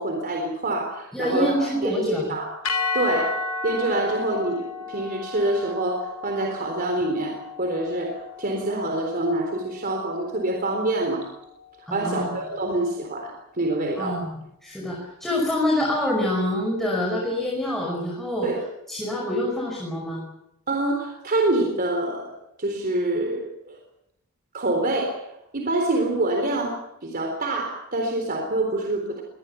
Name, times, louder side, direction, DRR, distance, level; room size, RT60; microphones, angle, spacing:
voice 1, 0.0-2.5 2.9-11.3 11.9-14.2 18.4-18.6 20.7-22.3 22.6-23.8 24.5-29.2, right 2 dB, 45° right, 2 dB, 3.9 m, -26 dB
voice 2, 1.1-2.3 11.9-12.3 14.0-14.3 14.6-18.5 18.9-20.2, left 1 dB, ahead, -2 dB, 5.3 m, -26 dB
sound 1, 2.6-10.9, left 3 dB, 70° left, 2.5 m, -33 dB
23.5 x 19.5 x 7.2 m, 0.83 s
head